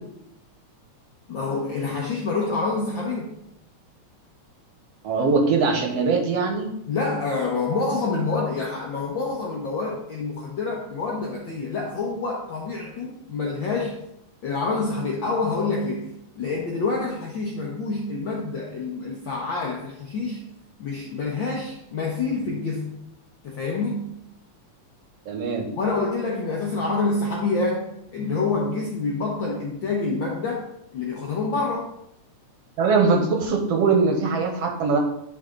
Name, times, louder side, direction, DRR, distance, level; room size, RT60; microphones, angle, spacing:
voice 1, 1.3-3.3 6.9-14.0 14.4-16.1 16.4-20.4 20.8-22.9 23.4-24.0 25.7-30.7 30.9-31.9, left 3 dB, 70° left, -2 dB, 1.2 m, -27 dB
voice 2, 5.0-6.7 25.3-25.7 32.8-35.0, right 4 dB, 70° right, 3 dB, 1.8 m, -21 dB
10.5 x 4.1 x 3.8 m, 0.78 s
omnidirectional pair, 3.3 m